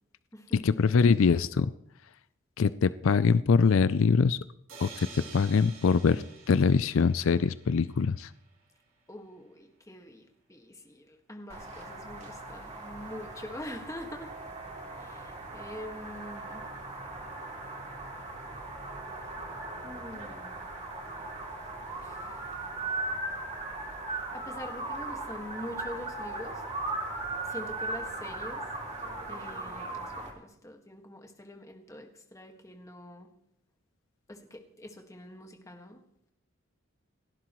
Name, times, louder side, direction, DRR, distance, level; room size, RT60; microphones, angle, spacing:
voice 1, 0.5-1.7 2.6-4.4 4.8-8.3, left 5 dB, 75° left, 15 dB, 0.4 m, -23 dB
sound 1, 4.7-8.5, right 5 dB, 90° right, 5.0 m, -49 dB
voice 2, 9.1-14.3 15.0-16.6 19.8-20.5 22.0-22.3 24.3-26.6 27.5-28.6 29.3-33.3 34.3-36.1, left 1 dB, 15° left, 3 dB, 1.6 m, -44 dB
sound 2, 11.5-30.3, right 2 dB, 35° right, 2.8 m, -38 dB
29.5 x 11.5 x 3.1 m, 0.76 s
head